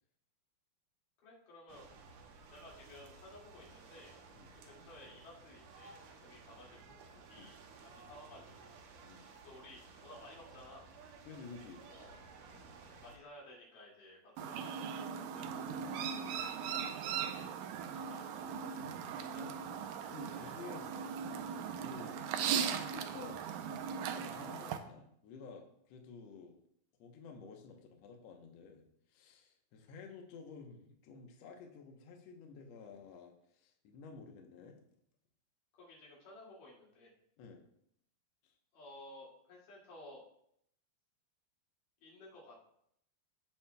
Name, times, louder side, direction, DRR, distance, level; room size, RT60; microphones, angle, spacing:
voice 1, 1.2-1.9 2.5-4.2 4.6-8.8 9.4-10.9 11.9-12.2 13.0-15.5 15.9-18.5 19.3-19.5 20.4-20.6 35.8-37.1 38.7-40.2 42.0-42.6, left 1 dB, 60° left, -4 dB, 3.8 m, -56 dB
sound 1, 1.7-13.2, right 4 dB, 70° right, 2.3 m, -56 dB
voice 2, 11.2-12.1 18.9-19.1 20.1-20.9 21.8-22.2 22.8-26.5 27.0-34.8 37.4-37.6 38.4-38.5, left 5 dB, 80° left, 2 dB, 1.5 m, -52 dB
Chirp tweet, 14.4-24.8, right 7 dB, 90° right, 1.9 m, -39 dB
16.0 x 5.8 x 2.3 m, 0.71 s
omnidirectional pair, 4.4 m